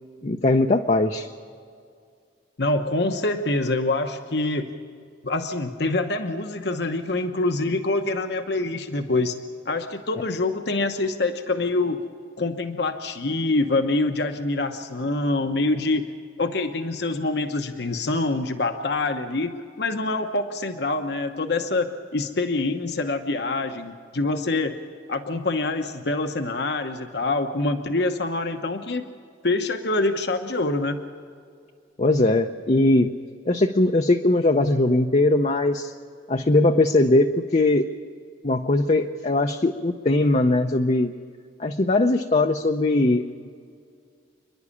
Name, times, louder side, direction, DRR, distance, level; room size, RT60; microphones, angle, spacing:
voice 1, 0.2-1.3 32.0-33.1 33.5-35.9 36.3-37.9 38.4-41.1 41.6-43.5, left 2 dB, 35° left, 4 dB, 0.6 m, -20 dB
voice 2, 2.6-4.7 5.2-9.4 9.6-12.0 12.4-16.0 16.4-24.8 25.1-29.1 29.4-31.0, left 2 dB, 60° left, 6 dB, 1.0 m, -25 dB
28.0 x 11.0 x 8.6 m, 2.3 s
head